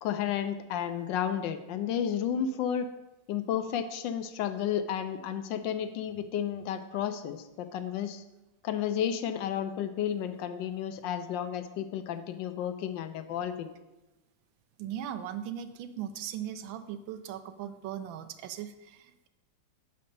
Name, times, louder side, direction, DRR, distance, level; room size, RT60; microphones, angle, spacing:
voice 1, 0.0-2.9 3.3-8.2 8.6-13.7, left 9 dB, 75° left, 10 dB, 1.2 m, -32 dB
voice 2, 14.8-19.3, right 10 dB, 85° right, 10 dB, 1.3 m, -39 dB
6.7 x 5.2 x 5.2 m, 1.0 s
omnidirectional pair, 2.1 m